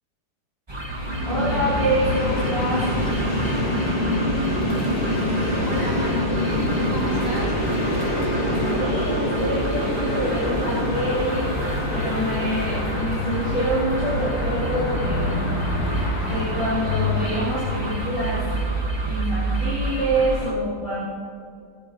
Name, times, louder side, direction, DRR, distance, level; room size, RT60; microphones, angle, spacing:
sound 1, 0.7-20.5, right 2 dB, 15° right, 1.0 m, -30 dB
Train, 0.9-19.0, left 1 dB, 50° left, 2.8 m, -25 dB
voice 1, 1.2-2.9 8.5-11.5 11.9-15.4 16.2-18.4 19.1-21.0, right 1 dB, 15° left, -10 dB, 2.9 m, -26 dB
voice 2, 5.6-7.6, right 2 dB, 55° right, -4 dB, 2.2 m, -33 dB
19.5 x 6.9 x 4.1 m, 2.2 s
omnidirectional pair, 2.0 m